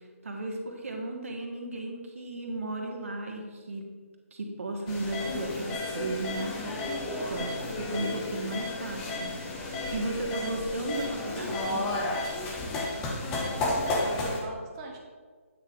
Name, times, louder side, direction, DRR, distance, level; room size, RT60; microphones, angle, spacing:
voice 1, 0.2-3.9 4.3-6.9 7.3-11.9, right 2 dB, 65° right, 1 dB, 1.6 m, -35 dB
sound 1, 4.9-14.4, left 2 dB, 10° left, 0.5 m, -32 dB
voice 2, 13.5-15.0, right 2 dB, 15° right, 0 dB, 0.9 m, -38 dB
8.7 x 3.7 x 5.2 m, 1.6 s
hypercardioid pair, 170°, 8 cm